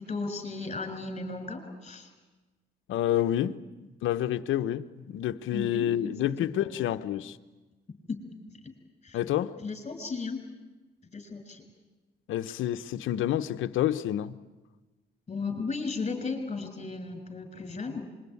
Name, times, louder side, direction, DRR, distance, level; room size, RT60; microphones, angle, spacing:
voice 1, 0.0-2.1 5.5-6.1 6.4-6.7 7.9-8.2 8.6-8.7 9.0-9.2 9.6-10.4 11.0-11.6 15.3-18.1, left 4 dB, 30° left, 6.0 m, -35 dB
voice 2, 2.9-3.6 4.0-7.4 9.1-9.6 12.3-14.3, left 12 dB, 80° left, 1.0 m, -28 dB
25.0 x 22.5 x 9.7 m
cardioid pair, 90°, 20 cm